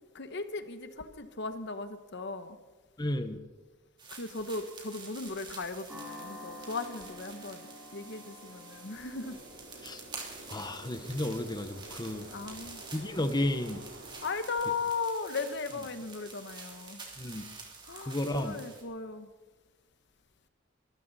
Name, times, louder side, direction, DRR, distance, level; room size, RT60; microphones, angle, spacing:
voice 1, 0.0-2.6 4.1-9.4 12.2-12.8 14.2-17.0 17.9-19.3, left 4 dB, 60° left, 10 dB, 1.1 m, -37 dB
voice 2, 3.0-3.4 9.8-10.0 10.5-12.3 12.9-13.8 17.2-17.4 18.1-18.5, left 1 dB, 20° left, 8 dB, 0.9 m, -32 dB
sound 1, 4.0-18.8, right 4 dB, 25° right, 3.1 m, -48 dB
sound 2, 5.9-14.4, left 1 dB, 5° right, 4.2 m, -51 dB
sound 3, 9.1-14.3, right 1 dB, 75° right, 3.7 m, -51 dB
24.0 x 14.0 x 4.1 m, 1.3 s
head